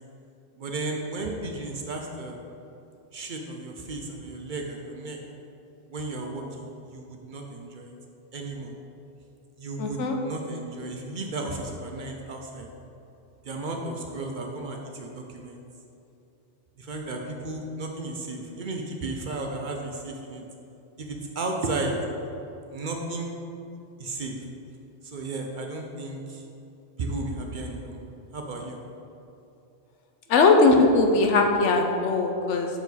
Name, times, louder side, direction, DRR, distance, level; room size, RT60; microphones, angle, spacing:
voice 1, 0.6-2.4 3.1-5.2 5.9-7.9 8.3-8.7 9.6-12.7 13.4-15.6 16.8-20.4 21.0-22.0 22.7-23.3 24.0-24.3 25.0-26.4 27.0-28.8, right 2 dB, 55° right, 2 dB, 0.6 m, -34 dB
voice 2, 9.8-10.2 30.3-32.7, left 3 dB, 90° left, 3 dB, 1.0 m, -20 dB
6.5 x 4.8 x 4.0 m, 2.8 s
omnidirectional pair, 1.2 m